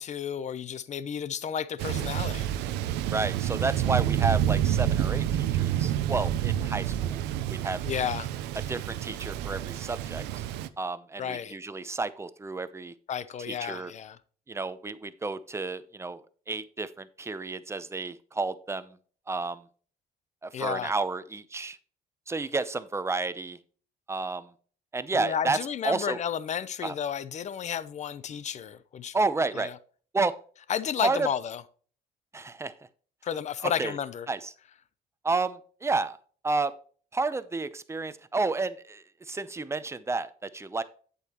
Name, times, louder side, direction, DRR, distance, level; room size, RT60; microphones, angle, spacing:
voice 1, 0.0-2.5 7.8-8.3 11.2-11.6 13.1-14.2 20.5-20.9 25.1-29.2 29.5-29.7 30.7-31.6 33.2-34.3, left 8 dB, 45° left, 0.7 m, -32 dB
Thunder, 1.8-10.7, right 11 dB, 90° right, 0.6 m, -28 dB
voice 2, 3.1-7.2 7.5-7.8 8.7-10.2 10.8-12.9 13.5-13.9 14.5-16.2 16.5-19.0 19.3-19.6 20.4-21.8 22.3-23.6 24.1-24.5 24.9-25.6 25.8-26.2 26.8-26.9 29.1-29.7 30.1-30.4 31.0-31.3 32.3-32.7 33.6-33.9 34.3-34.5 35.2-36.2 36.4-36.7 37.1-40.8, right 3 dB, 15° right, 0.7 m, -31 dB
8.7 x 8.1 x 3.0 m
cardioid pair, 110°, 17 cm